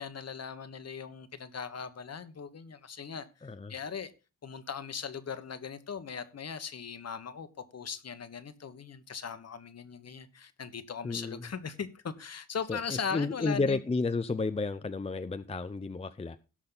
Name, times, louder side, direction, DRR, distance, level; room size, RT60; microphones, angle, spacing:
voice 1, 0.0-4.1 4.4-7.5 7.7-13.8, left 6 dB, 50° left, 1.3 m, -39 dB
voice 2, 3.4-3.7 11.0-11.4 12.7-16.4, left 3 dB, 20° left, 0.5 m, -32 dB
17.5 x 6.3 x 3.9 m
wide cardioid pair, 140°, 33 cm